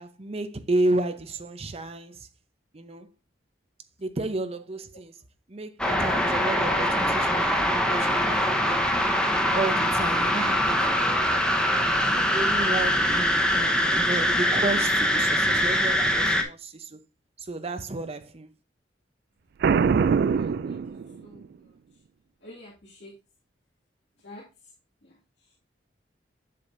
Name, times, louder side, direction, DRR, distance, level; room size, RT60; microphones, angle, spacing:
voice 1, 0.0-2.3 2.7-3.1 4.0-5.2 5.5-8.8 9.5-11.5 11.8-17.0 17.4-18.5, right 2 dB, 35° right, 0.7 m, -32 dB
sound 1, 5.8-16.4, equal, 5° left, 0.9 m, -23 dB
Boom, 19.6-21.5, right 6 dB, 60° right, 0.3 m, -23 dB
voice 2, 20.2-20.8 21.2-21.4 22.4-23.1 24.2-24.4, left 1 dB, 70° left, 2.1 m, -47 dB
7.7 x 7.4 x 2.6 m
head